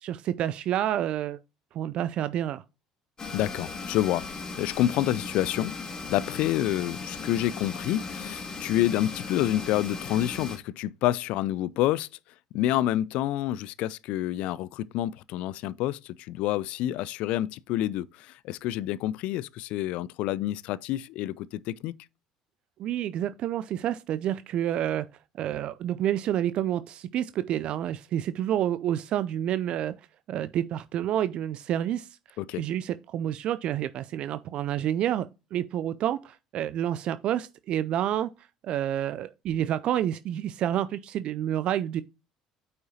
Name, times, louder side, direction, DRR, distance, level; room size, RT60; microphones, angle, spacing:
voice 1, 0.0-1.4 1.7-2.6 22.8-25.1 25.4-29.9 30.3-42.0, right 11 dB, 50° right, 0.4 m, -29 dB
sound 1, 3.2-10.6, left 4 dB, 30° left, 2.3 m, -37 dB
voice 2, 3.3-4.3 4.6-5.8 6.1-12.1 12.5-21.9 32.4-32.6, left 14 dB, 60° left, 0.4 m, -28 dB
9.2 x 5.5 x 2.8 m
figure-of-eight pair, 60°, 2 cm